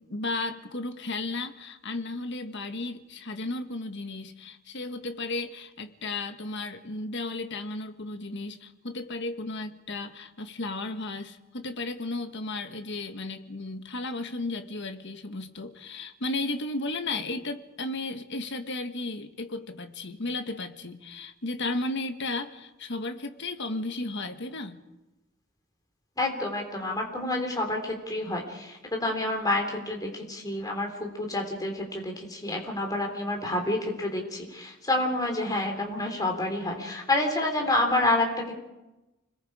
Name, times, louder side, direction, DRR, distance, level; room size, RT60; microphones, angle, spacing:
voice 1, 0.0-24.8, left 2 dB, 55° left, 7 dB, 1.5 m, -34 dB
voice 2, 26.2-38.5, left 2 dB, 15° left, 1 dB, 3.7 m, -28 dB
30.0 x 21.0 x 5.0 m, 1.0 s
head